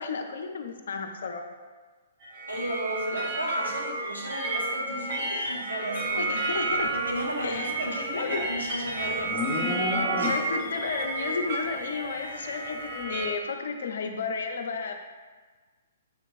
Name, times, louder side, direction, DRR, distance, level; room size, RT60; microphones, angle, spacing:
voice 1, 0.0-1.5 6.2-6.9 7.4-8.4 10.3-14.9, left 5 dB, 55° left, 5 dB, 0.4 m, -33 dB
sound 1, 2.2-13.3, right 2 dB, 40° right, 1.3 m, -31 dB
voice 2, 2.5-6.6 6.9-10.4, right 1 dB, 80° right, -3 dB, 1.2 m, -34 dB
Livestock farm animals working animals, 7.5-10.8, left 2 dB, ahead, 0.5 m, -33 dB
6.8 x 2.9 x 2.5 m, 1.4 s
figure-of-eight pair, 120°, 0 cm